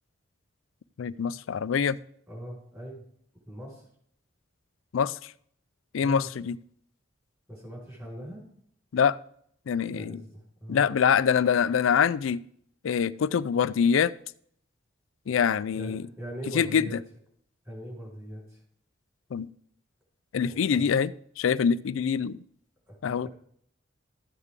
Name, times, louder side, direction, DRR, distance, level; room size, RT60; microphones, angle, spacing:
voice 1, 1.0-2.0 4.9-5.3 5.9-6.5 8.9-9.2 9.7-10.2 10.7-12.4 12.8-14.1 15.3-16.0 16.5-16.9 19.3-19.5 20.3-22.4 23.0-23.3, left 7 dB, 75° left, 0.4 m, -24 dB
voice 2, 2.3-3.0 3.5-3.8 6.0-6.3 7.5-8.4 9.9-10.9 15.7-17.0 17.6-18.6 20.4-20.8 22.9-23.0, right 1 dB, 15° right, 5.0 m, -40 dB
13.0 x 8.1 x 3.7 m
head